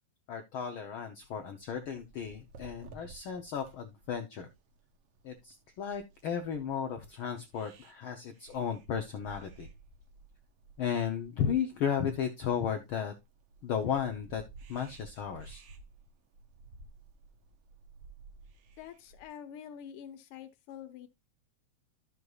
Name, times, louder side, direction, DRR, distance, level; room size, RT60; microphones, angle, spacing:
voice 1, 0.3-4.5 5.2-9.7 10.8-13.1 13.6-14.4 14.7-15.6, left 8 dB, 90° left, 1.1 m, -34 dB
sound 1, 1.6-19.3, right 3 dB, 65° right, 1.9 m, -55 dB
voice 2, 18.8-21.1, left 9 dB, 65° left, 1.6 m, -46 dB
12.0 x 6.4 x 2.3 m
omnidirectional pair, 3.3 m